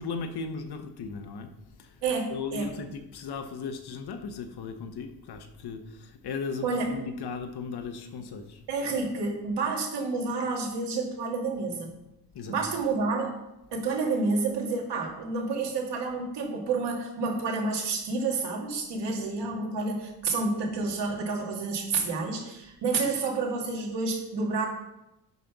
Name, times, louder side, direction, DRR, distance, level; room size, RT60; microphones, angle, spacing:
voice 1, 0.0-2.0 2.3-8.6 12.3-12.5, left 5 dB, 70° left, 1.0 m, -37 dB
voice 2, 2.0-2.7 6.6-6.9 8.7-11.9 12.5-13.3 13.7-24.7, right 3 dB, 85° right, 2.3 m, -29 dB
8.3 x 5.3 x 6.0 m
cardioid pair, 150°, 41 cm